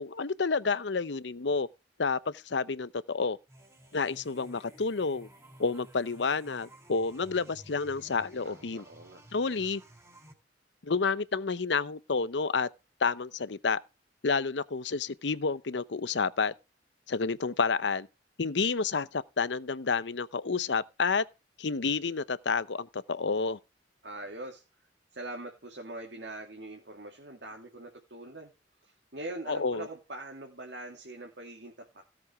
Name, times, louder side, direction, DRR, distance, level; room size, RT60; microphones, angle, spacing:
voice 1, 0.0-1.7 2.0-3.4 3.9-5.3 5.6-8.8 9.3-9.8 10.8-12.7 13.0-13.8 14.2-16.5 17.1-18.1 18.4-21.2 21.6-23.6 29.5-29.9, left 4 dB, 75° left, 0.7 m, -30 dB
sound 1, 3.5-10.3, equal, 15° right, 3.4 m, -54 dB
voice 2, 8.4-9.2 24.0-24.6 25.1-28.5 28.8-32.0, right 2 dB, 70° right, 2.6 m, -43 dB
16.5 x 7.7 x 3.5 m
head